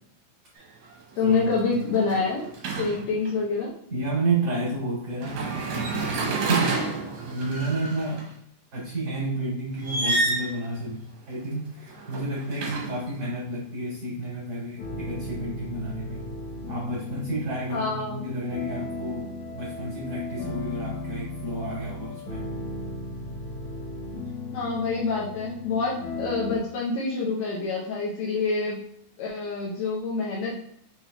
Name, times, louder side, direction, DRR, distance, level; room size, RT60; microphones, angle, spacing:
sound 1, 0.6-0.8 1.2-3.3 5.1-8.2 9.8-10.6 11.8-13.2, right 3 dB, 70° right, 2.4 m, -30 dB
voice 1, 1.2-2.5 2.8-3.7 17.7-18.3 24.5-28.8 29.2-30.5, left 4 dB, 85° left, -4 dB, 1.5 m, -27 dB
voice 2, 3.9-7.0 7.2-8.4 8.7-16.2 16.7-22.5, right 2 dB, 50° right, -6 dB, 2.1 m, -31 dB
sound 2, 14.8-26.6, left 2 dB, 65° left, 2.2 m, -36 dB
5.9 x 3.4 x 2.3 m, 0.70 s
omnidirectional pair, 4.2 m